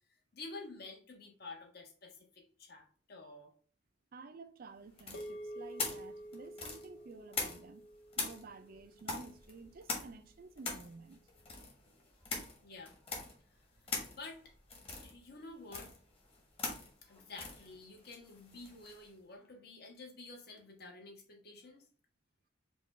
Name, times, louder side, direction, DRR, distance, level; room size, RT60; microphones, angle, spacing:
voice 1, 0.3-3.5 12.6-12.9 14.1-14.5 15.0-15.9 17.0-21.9, left 3 dB, 60° left, 1.3 m, -50 dB
voice 2, 4.1-7.9 8.2-11.2, right 4 dB, 50° right, 0.5 m, -52 dB
sound 1, 5.0-7.8 8.1-19.1, left 3 dB, 30° left, 1.4 m, -42 dB
sound 2, 5.1-9.6, right 1 dB, 90° left, 0.8 m, -49 dB
5.2 x 2.4 x 4.2 m
head